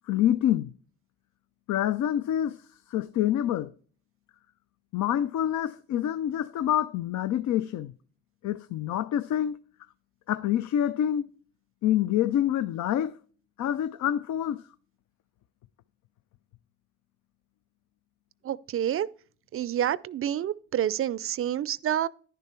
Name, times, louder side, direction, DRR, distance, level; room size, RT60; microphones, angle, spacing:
voice 1, 0.1-0.7 1.7-3.7 4.9-7.9 8.4-9.6 10.3-11.2 11.8-13.2 13.6-14.6, left 11 dB, 70° left, 0.5 m, -27 dB
voice 2, 18.4-19.1 19.5-22.1, right 10 dB, 45° right, 0.4 m, -28 dB
10.5 x 6.9 x 4.3 m
cardioid pair, 90°, 30 cm